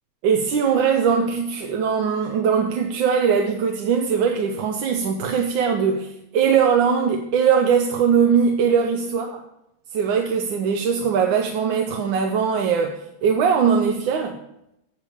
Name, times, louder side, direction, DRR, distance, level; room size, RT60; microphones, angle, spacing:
voice 1, 0.2-9.2 9.9-14.4, right 6 dB, 70° right, 4 dB, 1.3 m, -20 dB
8.3 x 6.7 x 4.9 m, 0.82 s
omnidirectional pair, 2.4 m